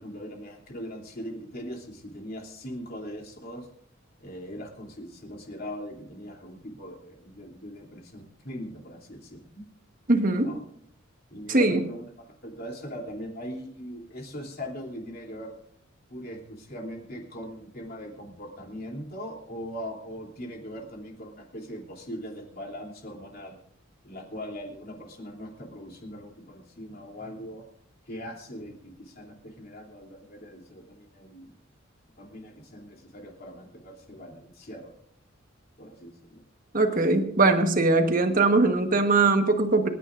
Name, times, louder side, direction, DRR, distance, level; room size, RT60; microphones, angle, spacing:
voice 1, 0.0-3.7 4.2-9.6 10.4-10.6 11.3-12.0 12.4-15.6 16.1-23.6 24.0-27.6 28.1-31.5 32.2-34.9 35.8-36.4, equal, 50° left, 0 dB, 3.1 m, -40 dB
voice 2, 10.1-10.6 11.5-11.8 36.7-39.9, right 3 dB, 45° right, 6 dB, 1.3 m, -21 dB
28.0 x 10.0 x 2.6 m, 0.63 s
head